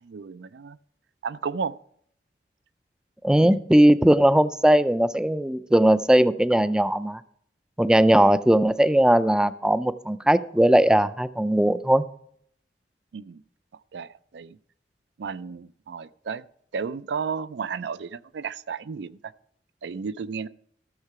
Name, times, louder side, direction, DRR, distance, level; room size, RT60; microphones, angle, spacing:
voice 1, 0.0-0.8 1.2-1.8 3.4-3.6 13.1-13.4 13.9-14.6 15.2-16.5 16.7-19.3 19.8-20.5, right 5 dB, 70° right, 16 dB, 0.4 m, -33 dB
voice 2, 3.2-7.2 7.8-12.0, right 1 dB, 5° right, 13 dB, 0.3 m, -19 dB
13.5 x 6.6 x 4.7 m, 0.66 s
head